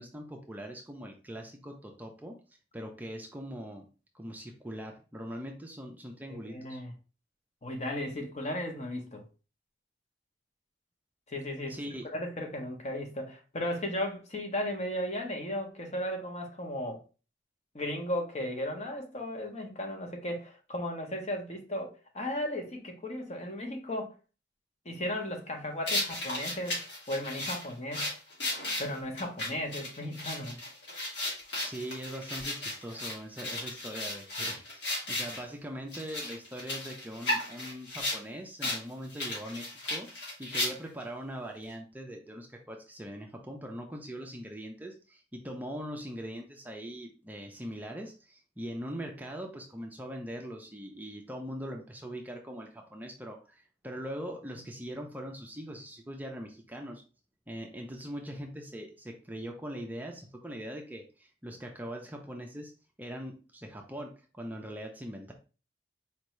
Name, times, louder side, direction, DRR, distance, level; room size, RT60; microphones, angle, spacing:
voice 1, 0.0-2.4 2.7-3.9 4.1-6.8 11.7-12.0 31.6-57.0 57.5-62.7 63.0-65.3, equal, 10° right, 0.5 m, -41 dB
voice 2, 6.3-6.9 7.6-9.2 11.3-11.8 12.0-17.0 17.7-24.1 24.8-26.8 27.1-28.1 28.8-30.6, left 1 dB, 40° left, 0.9 m, -35 dB
sound 1, 25.9-35.4 35.9-38.2 38.6-38.8 39.1-41.0, left 1 dB, 70° left, 2.0 m, -35 dB
4.4 x 2.7 x 3.1 m
head